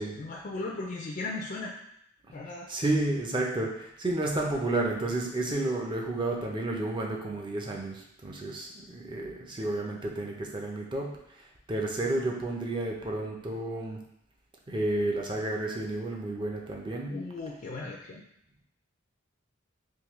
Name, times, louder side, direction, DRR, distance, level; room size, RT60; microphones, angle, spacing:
voice 1, 0.0-1.8 2.3-2.7 17.1-18.2, left 3 dB, 40° left, -2 dB, 0.4 m, -37 dB
voice 2, 2.7-14.0 14.7-17.2, right 2 dB, 25° right, -1 dB, 0.5 m, -31 dB
3.6 x 2.7 x 3.0 m, 0.76 s
head